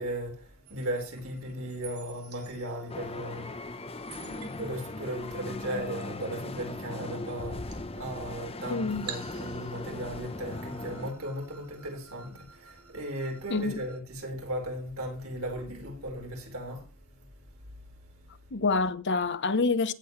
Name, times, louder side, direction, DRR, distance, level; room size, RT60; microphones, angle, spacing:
voice 1, 0.0-17.9 18.2-18.4, right 1 dB, 70° right, 4.6 m, -37 dB
sound 1, 0.7-14.0, right 7 dB, 85° right, 2.7 m, -51 dB
sound 2, 2.9-11.1, left 2 dB, 25° left, 0.8 m, -39 dB
voice 2, 8.7-9.1 13.5-13.8 18.5-19.9, left 3 dB, 55° left, 0.9 m, -27 dB
16.5 x 7.8 x 3.2 m
head